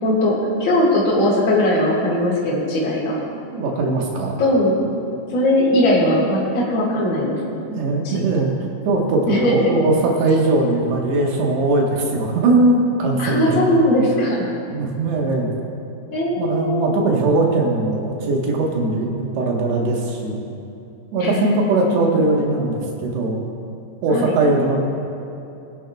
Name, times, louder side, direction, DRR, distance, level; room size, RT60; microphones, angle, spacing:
voice 1, 0.0-3.2 4.4-4.8 5.3-7.6 8.0-8.2 9.3-9.7 13.2-14.5 16.1-16.9 21.2-22.3 24.1-24.3, left 1 dB, 40° left, -7 dB, 2.0 m, -19 dB
voice 2, 3.5-4.4 7.7-8.5 8.8-13.8 14.7-15.5 16.4-20.4 21.1-23.4 24.0-24.8, right 2 dB, 75° right, -1 dB, 3.5 m, -20 dB
23.0 x 10.0 x 2.4 m, 2.7 s
omnidirectional pair, 5.0 m